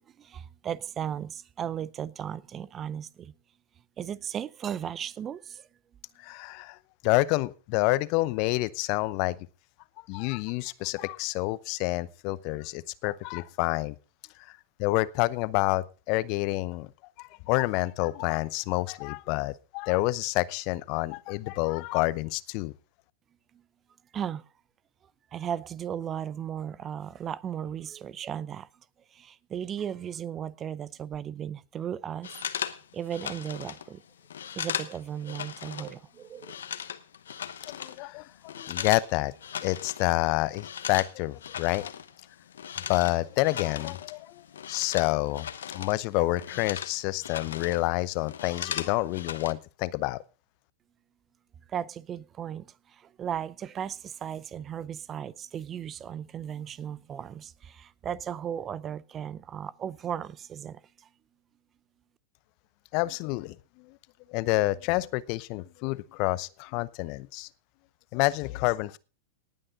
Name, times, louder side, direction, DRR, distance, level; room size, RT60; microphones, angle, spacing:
voice 1, 0.0-3.3 4.0-5.7 24.1-24.4 25.3-28.7 29.1-32.3 32.9-34.0 34.6-36.5 51.7-60.8, right 9 dB, 30° right, 0.6 m, -36 dB
voice 2, 6.2-6.8 7.0-9.4 10.1-14.0 14.4-16.9 17.2-22.7 37.7-39.3 39.6-41.9 42.9-45.5 45.7-50.2 62.9-64.0 64.3-67.5 68.1-69.0, left 20 dB, 45° left, 0.7 m, -28 dB
sound 1, 32.2-36.0 36.2-39.1 39.4-40.1 40.4-46.0 46.3-47.8 48.1-49.5, left 8 dB, 70° left, 1.0 m, -38 dB
18.5 x 8.9 x 3.7 m
figure-of-eight pair, 95°, 0 cm